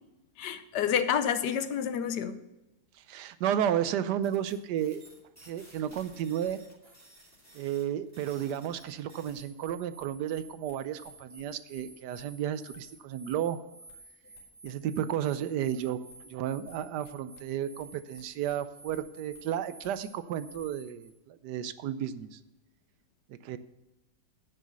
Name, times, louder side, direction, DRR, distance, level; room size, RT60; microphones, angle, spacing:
voice 1, 0.4-2.4, left 8 dB, 70° left, 11 dB, 1.3 m, -29 dB
voice 2, 3.1-5.0 5.4-6.6 7.5-13.6 14.6-16.0 16.2-22.4 23.3-23.6, right 10 dB, 75° right, 13 dB, 1.2 m, -32 dB
sound 1, 4.2-21.1, right 1 dB, 10° right, 2.9 m, -53 dB
10.5 x 6.2 x 6.8 m, 0.99 s
omnidirectional pair, 1.9 m